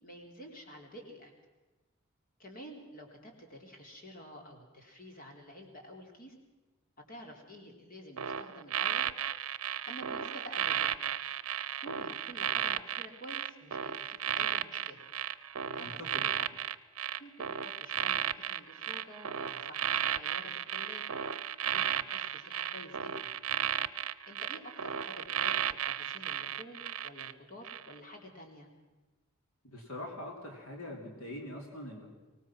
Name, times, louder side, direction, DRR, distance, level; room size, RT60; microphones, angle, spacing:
voice 1, 0.0-1.3 2.4-6.3 7.1-9.1 9.9-11.1 11.8-15.1 15.6-16.5 17.2-21.0 21.7-23.3 24.3-28.7, equal, 40° left, 2 dB, 3.6 m, -50 dB
sound 1, 8.2-27.3 27.7-27.9, right 10 dB, 80° right, 0.7 m, -34 dB
voice 2, 15.8-16.2 29.6-32.1, left 1 dB, 75° left, 1 dB, 3.1 m, -43 dB
24.0 x 19.0 x 6.0 m, 1.1 s
head